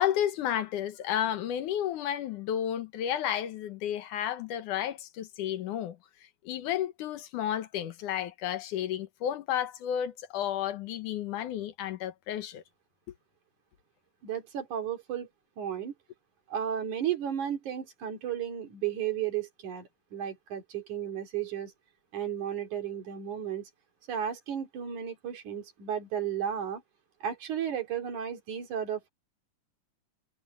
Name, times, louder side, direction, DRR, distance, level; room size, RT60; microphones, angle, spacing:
voice 1, 0.0-6.0 6.4-12.6, left 10 dB, 75° left, 2.6 m, -32 dB
voice 2, 14.2-15.3 15.6-15.9 16.5-21.7 22.1-23.7 24.1-26.8 27.2-29.1, right 9 dB, 65° right, 4.0 m, -34 dB
omnidirectional pair, 3.7 m